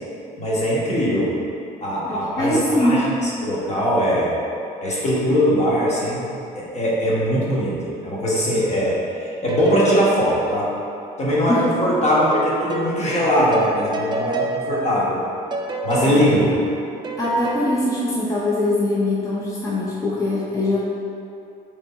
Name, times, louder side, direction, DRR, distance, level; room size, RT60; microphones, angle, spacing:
voice 1, 0.4-1.3 1.8-4.4 4.8-6.2 6.5-10.7 11.2-15.2 15.8-16.6, equal, 40° left, -6 dB, 1.2 m, -21 dB
voice 2, 2.0-3.1 11.5-11.7 16.0-16.2 17.2-20.8, left 1 dB, 20° left, -7 dB, 0.6 m, -22 dB
sound 1, 8.5-11.4 12.3-17.7, right 2 dB, 25° right, 0.4 m, -30 dB
3.6 x 3.3 x 3.9 m, 2.7 s
cardioid pair, 110°, 17 cm